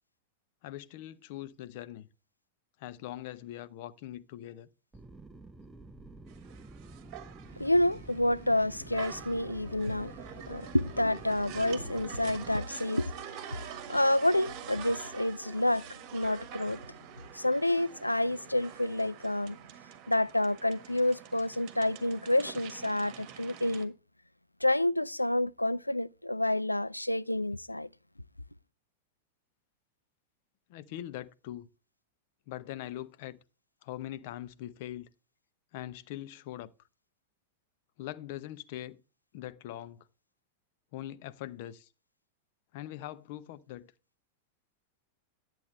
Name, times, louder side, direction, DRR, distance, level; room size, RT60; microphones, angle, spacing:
voice 1, 0.6-2.1 2.8-4.7 30.7-31.7 32.5-33.4 33.8-35.1 35.7-36.7 38.0-39.0 39.3-40.0 40.9-41.9 42.7-43.9, left 13 dB, 50° left, 0.7 m, -42 dB
sound 1, 4.9-12.5, right 2 dB, 10° right, 0.7 m, -50 dB
sound 2, 6.3-23.9, right 9 dB, 40° right, 1.5 m, -46 dB
voice 2, 7.6-10.2 10.5-16.8 17.3-19.6 20.1-23.9 24.6-27.9, left 1 dB, 85° left, 0.3 m, -29 dB
10.5 x 7.8 x 3.2 m
figure-of-eight pair, 90°, 0 cm